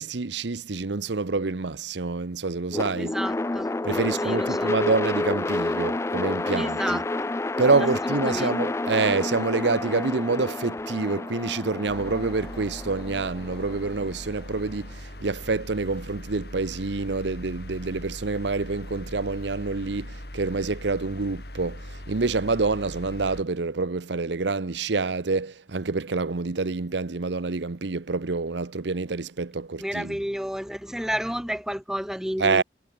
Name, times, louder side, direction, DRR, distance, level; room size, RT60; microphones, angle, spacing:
voice 1, 0.0-3.2 3.8-7.0 7.6-30.2 32.4-32.6, right 3 dB, 70° right, 0.8 m, -27 dB
sound 1, 2.7-14.8, left 2 dB, 15° left, 0.3 m, -29 dB
voice 2, 3.0-3.7 4.2-4.7 6.6-7.3 8.0-8.6 29.8-32.6, equal, 5° right, 1.0 m, -31 dB
sound 2, 11.9-23.4, left 1 dB, 55° left, 7.3 m, -40 dB
head